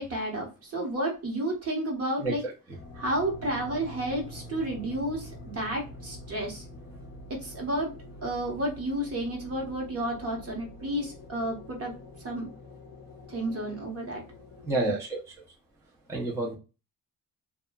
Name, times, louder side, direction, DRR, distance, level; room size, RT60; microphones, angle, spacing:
voice 1, 0.0-2.4 3.0-6.6 7.4-7.9 8.2-11.9 12.2-12.5 13.3-14.2, right 1 dB, 45° right, 0 dB, 1.1 m, -31 dB
voice 2, 2.2-2.5 14.6-15.3 16.1-16.6, right 2 dB, 10° right, -3 dB, 0.5 m, -29 dB
sound 1, 2.7-14.7, left 1 dB, 40° left, 0.5 m, -46 dB
2.7 x 2.3 x 2.2 m, 0.31 s
cardioid pair, 130°, 34 cm